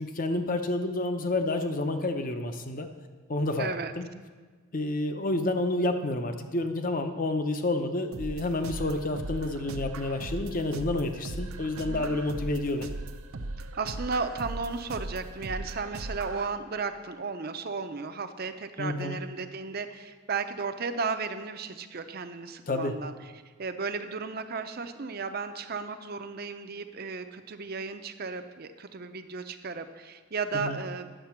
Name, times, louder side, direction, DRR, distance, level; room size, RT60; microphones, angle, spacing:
voice 1, 0.0-2.9 3.3-3.7 4.0-4.1 4.7-12.9 18.8-19.2 22.7-23.0 30.5-30.8, left 2 dB, 40° left, 7 dB, 0.7 m, -29 dB
voice 2, 3.6-3.9 11.8-12.0 13.7-23.1 23.6-31.1, right 4 dB, 45° right, 9 dB, 0.6 m, -34 dB
sound 1, 8.1-16.5, right 2 dB, 90° right, 0.6 m, -38 dB
10.0 x 7.5 x 5.8 m, 1.4 s
head